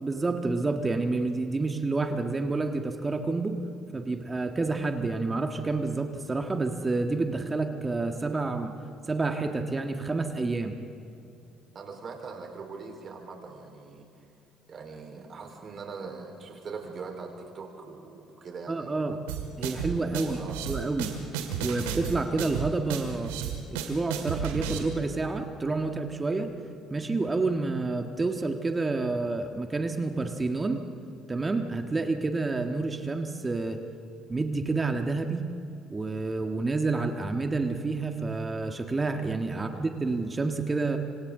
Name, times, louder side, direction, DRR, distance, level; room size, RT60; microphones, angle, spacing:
voice 1, 0.0-3.6 3.9-8.7 9.1-10.8 18.7-19.2 19.6-20.4 20.7-21.1 21.6-23.3 23.7-26.5 26.9-30.8 31.3-33.8 34.3-35.5 35.9-41.0, right 3 dB, 25° right, 5 dB, 1.6 m, -29 dB
voice 2, 11.7-14.0 14.7-19.2 20.1-20.6 39.5-39.8, right 4 dB, 45° right, 2 dB, 4.3 m, -41 dB
sound 1, 19.3-24.8, right 8 dB, 80° right, 2.2 m, -33 dB
26.5 x 25.5 x 3.9 m, 2.7 s
hypercardioid pair, 60°, 0 cm